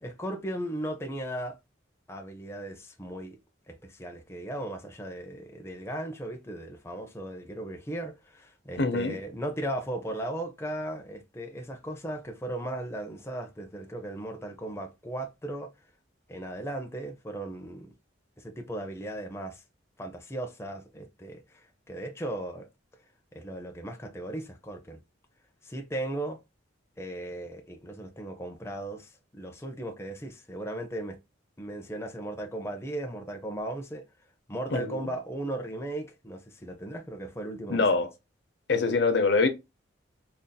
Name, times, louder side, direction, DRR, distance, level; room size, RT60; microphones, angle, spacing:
voice 1, 0.0-1.6 2.1-3.4 3.7-15.7 16.3-17.9 18.4-19.6 20.0-22.7 23.3-25.0 25.6-26.4 27.0-31.2 31.6-34.0 34.5-37.8, right 1 dB, 15° left, 0.6 m, -37 dB
voice 2, 8.8-9.1 34.7-35.0 37.7-38.1 38.7-39.5, left 3 dB, 60° left, 0.7 m, -24 dB
5.3 x 2.6 x 2.2 m
head